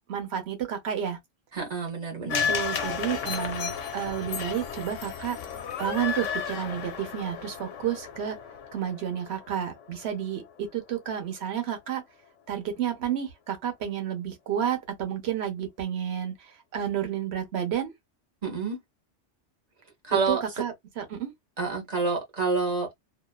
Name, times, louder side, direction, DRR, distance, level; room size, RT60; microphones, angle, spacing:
voice 1, 0.1-1.2 2.5-5.4 5.8-8.4 8.7-12.0 12.5-17.9 20.3-21.3, right 9 dB, 60° right, 1.1 m, -31 dB
voice 2, 1.5-2.5 18.4-18.8 20.0-20.4 21.6-22.9, right 4 dB, 40° right, 0.8 m, -28 dB
sound 1, 2.3-10.6 10.9-11.0, left 7 dB, 90° left, 1.0 m, -33 dB
2.5 x 2.4 x 2.3 m
omnidirectional pair, 1.3 m